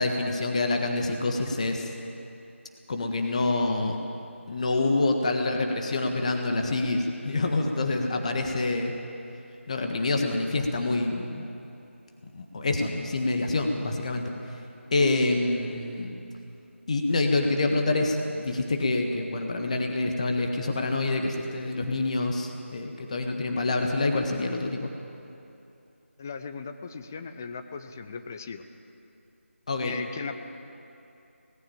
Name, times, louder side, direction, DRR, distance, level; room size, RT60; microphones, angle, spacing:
voice 1, 0.0-1.9 2.9-4.0 4.5-8.9 9.7-11.4 12.3-14.3 14.9-16.1 16.9-24.9 29.7-29.9, left 2 dB, 30° left, 3 dB, 1.5 m, -26 dB
voice 2, 26.2-28.6 29.8-30.4, left 5 dB, 15° left, 8 dB, 0.4 m, -37 dB
18.5 x 16.0 x 8.9 m, 2.8 s
figure-of-eight pair, 160°, 7 cm